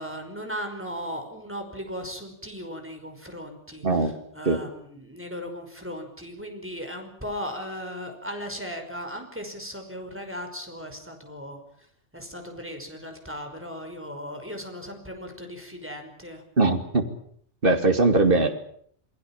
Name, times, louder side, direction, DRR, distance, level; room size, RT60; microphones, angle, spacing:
voice 1, 0.0-11.6 12.1-16.4, equal, 10° right, 4 dB, 5.5 m, -37 dB
voice 2, 16.6-17.1 17.6-18.5, right 3 dB, 50° right, 6 dB, 2.8 m, -20 dB
29.0 x 19.5 x 7.4 m, 0.63 s
omnidirectional pair, 1.2 m